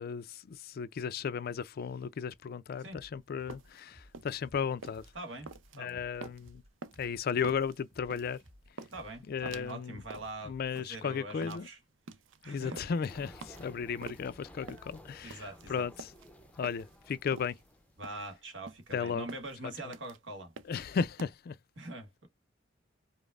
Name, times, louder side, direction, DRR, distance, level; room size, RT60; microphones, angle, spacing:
voice 1, 0.0-5.0 5.8-6.6 7.0-8.4 9.3-10.0 10.4-11.7 12.4-16.1 16.6-17.6 18.9-19.3 20.7-21.6, left 6 dB, 55° left, 0.4 m, -35 dB
sound 1, 2.9-10.8, equal, 35° right, 2.5 m, -59 dB
sound 2, 3.3-21.3, right 4 dB, 90° right, 0.5 m, -49 dB
voice 2, 5.1-5.5 5.8-6.0 8.9-11.8 12.4-12.8 15.2-15.9 18.0-20.5 21.8-22.3, right 2 dB, 70° right, 1.5 m, -43 dB
sound 3, 13.1-18.1, left 1 dB, 5° left, 0.6 m, -54 dB
5.1 x 2.0 x 2.4 m
head